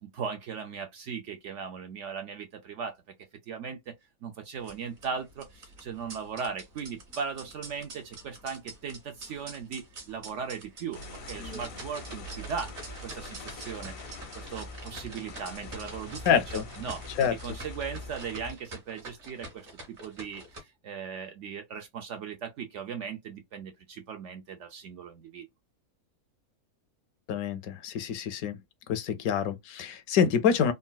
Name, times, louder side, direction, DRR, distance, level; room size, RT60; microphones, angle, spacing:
voice 1, 0.0-3.0 3.5-3.9 4.2-11.0 11.3-12.7 13.0-13.9 14.3-25.5, right 6 dB, 70° right, 0.7 m, -38 dB
sound 1, 4.5-20.6, right 2 dB, 50° right, 1.3 m, -46 dB
sound 2, 10.9-18.5, left 2 dB, 55° left, 0.7 m, -43 dB
voice 2, 16.3-16.6 17.2-17.3 27.3-28.6 28.9-30.7, left 7 dB, 75° left, 1.0 m, -26 dB
3.8 x 2.0 x 2.2 m
omnidirectional pair, 1.6 m